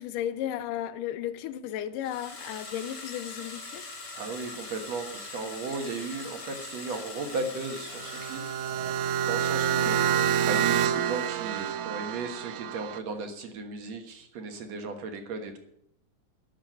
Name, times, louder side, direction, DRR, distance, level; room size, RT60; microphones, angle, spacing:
voice 1, 0.0-3.9 9.8-10.2, left 11 dB, 85° left, 2.3 m, -34 dB
sound 1, 2.0-9.4, left 3 dB, 40° left, 3.2 m, -42 dB
voice 2, 4.1-15.6, right 4 dB, 60° right, 2.3 m, -36 dB
sound 2, 7.9-13.0, right 9 dB, 80° right, 1.8 m, -27 dB
12.0 x 7.0 x 9.2 m
omnidirectional pair, 3.8 m